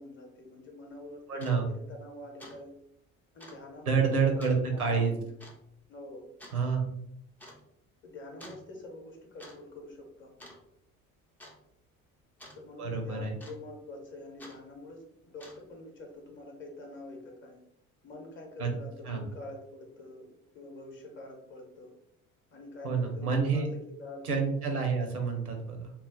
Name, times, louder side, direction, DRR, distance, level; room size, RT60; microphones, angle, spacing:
voice 1, 0.0-2.7 3.3-5.3 5.9-6.3 8.0-10.3 12.5-17.6 18.0-20.3 20.5-21.9 22.5-24.5, left 1 dB, 25° left, 1 dB, 0.9 m, -46 dB
sound 1, 0.9-1.0 1.3-1.6 2.0-2.1 2.4-2.6 2.9-3.0 3.4-3.6 4.4-4.6 5.4-5.6 6.4-6.6 7.4-7.6 8.4-8.6 9.2-9.6 9.8-10.1 10.4-10.9 11.4-11.6 12.4-12.6 13.4-13.8 14.4-14.6 15.2-15.8, equal, 5° left, 0.3 m, -50 dB
voice 2, 1.3-1.6 3.9-5.1 6.5-6.9 12.8-13.3 18.6-18.7 19.0-19.3 22.8-23.7 24.2-25.9, right 5 dB, 85° right, 3 dB, 0.6 m, -28 dB
2.3 x 2.0 x 3.6 m, 0.76 s
figure-of-eight pair, 60°, 43 cm